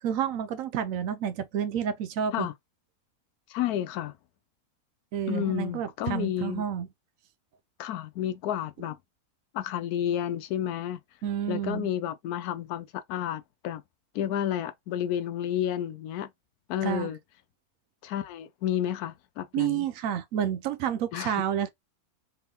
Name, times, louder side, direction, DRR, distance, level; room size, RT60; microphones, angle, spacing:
voice 1, 0.0-2.5 5.1-6.9 11.2-11.9 16.8-17.1 19.5-21.7, right 9 dB, 70° right, 0.9 m, -30 dB
voice 2, 3.5-4.1 5.3-6.6 7.8-9.0 9.5-11.0 11.5-13.8 14.1-16.3 16.7-17.2 18.0-19.9 21.1-21.4, left 10 dB, 85° left, 1.1 m, -31 dB
3.6 x 3.5 x 2.8 m
omnidirectional pair, 1.6 m